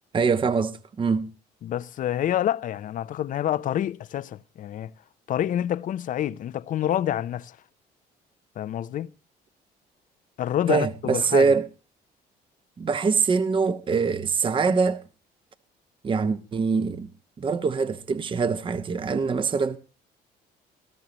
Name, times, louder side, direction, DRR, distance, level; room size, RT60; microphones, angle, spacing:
voice 1, 0.1-1.3 10.7-11.7 12.8-15.0 16.0-17.1 17.4-19.8, right 5 dB, 30° right, 0.9 m, -23 dB
voice 2, 1.6-4.9 5.3-7.6 8.6-9.1 10.4-11.5, left 11 dB, 50° left, 0.6 m, -27 dB
18.5 x 14.0 x 3.0 m
cardioid pair, 110°, 17 cm